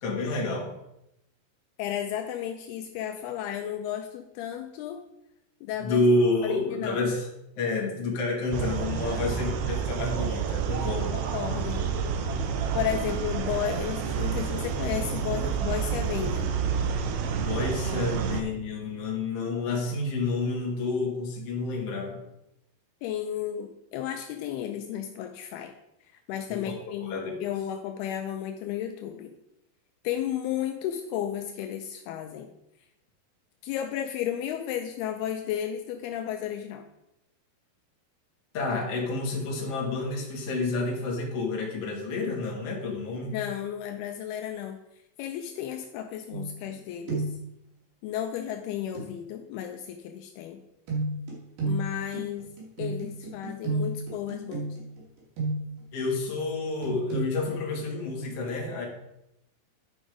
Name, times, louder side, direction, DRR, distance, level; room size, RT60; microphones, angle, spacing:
voice 1, 0.0-0.7 5.8-7.3 7.6-11.2 17.3-22.2 26.5-27.4 38.5-43.4 55.9-58.9, left 3 dB, 45° left, -1 dB, 2.4 m, -29 dB
voice 2, 1.8-5.0 5.6-6.0 6.4-7.1 9.1-9.5 11.1-11.9 12.7-16.6 23.0-25.7 26.3-29.3 30.0-32.5 33.6-36.8 43.2-44.8 45.2-47.4 48.0-50.6 51.6-54.8, left 10 dB, 80° left, 5 dB, 2.5 m, -33 dB
sound 1, 8.5-18.4, right 7 dB, 75° right, 2.5 m, -29 dB
sound 2, 46.3-46.8 47.1-47.5 49.0-49.1 50.9-55.9 56.8-57.3, right 2 dB, 60° right, 4.0 m, -32 dB
10.0 x 5.2 x 5.0 m, 0.84 s
omnidirectional pair, 4.6 m